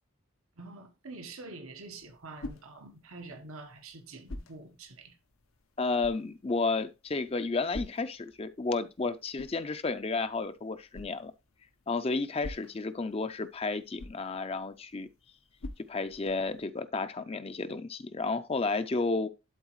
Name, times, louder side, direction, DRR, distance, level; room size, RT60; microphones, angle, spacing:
voice 1, 0.6-5.2, right 3 dB, 90° right, 1.2 m, -46 dB
sound 1, 1.7-16.7, left 2 dB, 80° left, 0.9 m, -49 dB
voice 2, 5.8-11.3 11.9-15.1 15.9-19.3, left 3 dB, 30° left, 0.4 m, -32 dB
12.0 x 4.0 x 3.1 m
head